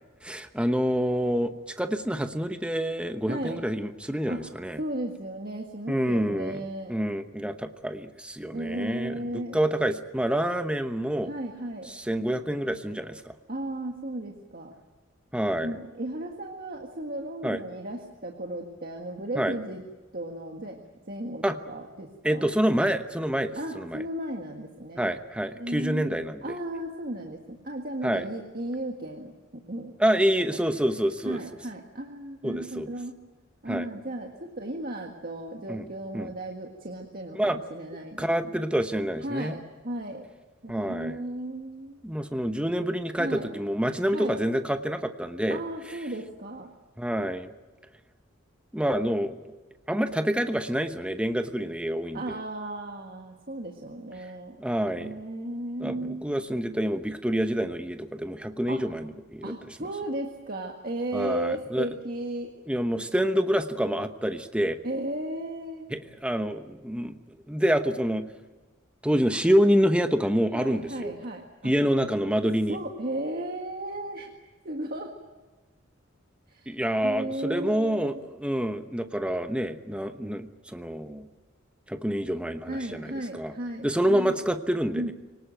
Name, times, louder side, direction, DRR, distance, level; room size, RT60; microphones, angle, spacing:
voice 1, 0.2-4.8 5.9-9.2 9.5-11.3 11.9-13.3 15.3-15.8 17.4-17.6 19.4-19.5 21.4-21.5 22.2-24.0 25.0-26.4 28.0-28.2 30.0-31.4 32.4-32.9 33.7-33.9 35.7-35.8 36.1-36.3 37.3-37.6 38.2-39.6 40.7-41.1 42.0-45.6 45.9-46.0 47.0-47.5 48.7-49.4 49.9-52.3 54.6-55.1 55.8-59.5 61.1-61.9 62.7-64.8 65.9-68.3 69.0-71.1 71.6-72.8 76.7-81.3 81.9-83.5 83.8-85.1, equal, 5° right, 8 dB, 1.0 m, -27 dB
voice 2, 3.3-3.6 4.3-4.4 4.8-6.9 8.5-9.6 11.2-11.9 13.5-14.7 15.6-19.8 20.1-20.8 21.1-22.5 23.6-25.1 25.6-29.9 31.2-33.2 33.6-38.5 39.2-40.3 40.6-42.0 43.2-43.5 44.1-44.4 45.5-46.7 52.1-54.6 55.0-56.3 58.7-58.8 59.4-62.5 64.8-65.9 70.5-71.7 72.7-74.3 74.7-75.1 76.5-76.7 77.0-78.2 82.7-84.4 84.9-85.1, right 1 dB, 45° right, 2 dB, 1.8 m, -35 dB
24.5 x 18.5 x 9.2 m, 1.3 s
head